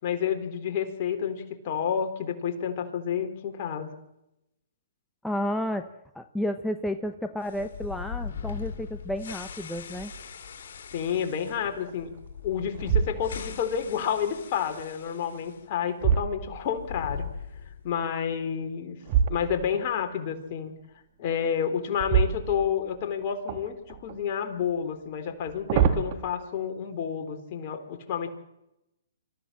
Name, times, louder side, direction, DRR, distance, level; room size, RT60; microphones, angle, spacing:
voice 1, 0.0-3.9 10.9-12.1 12.4-17.2 17.8-19.0 19.2-20.7 21.2-28.3, left 8 dB, 45° left, 4 dB, 3.9 m, -30 dB
voice 2, 5.2-5.9 6.1-10.1, equal, 5° left, 6 dB, 1.0 m, -31 dB
sound 1, 7.4-15.6 15.9-16.0 16.6-18.0, left 6 dB, 65° left, 4.0 m, -39 dB
sound 2, 9.9-10.4 10.9-11.0 11.6-12.2 12.7-13.6 15.3-17.0 19.0-19.9 21.9-23.1 23.5-24.2 25.3-26.1, right 8 dB, 40° right, 2.2 m, -27 dB
25.5 x 15.0 x 7.6 m, 0.87 s
hypercardioid pair, 130°, 0 cm